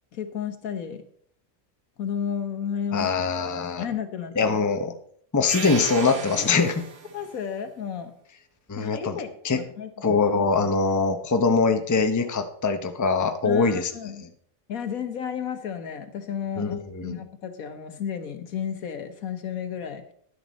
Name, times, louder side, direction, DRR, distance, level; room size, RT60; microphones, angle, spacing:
voice 1, 0.1-1.0 2.0-4.6 6.4-6.6 7.1-8.1 8.8-9.9 13.4-14.2 14.7-20.0, left 7 dB, 75° left, 8 dB, 1.6 m, -33 dB
voice 2, 2.9-3.8 4.4-4.9 5.3-6.8 8.7-9.2 9.4-9.6 10.0-13.9 16.6-17.2, left 4 dB, 20° left, 7 dB, 0.6 m, -23 dB
sound 1, 5.5-7.4, right 5 dB, 80° right, 1.6 m, -35 dB
11.0 x 9.5 x 4.1 m, 0.62 s
omnidirectional pair, 1.5 m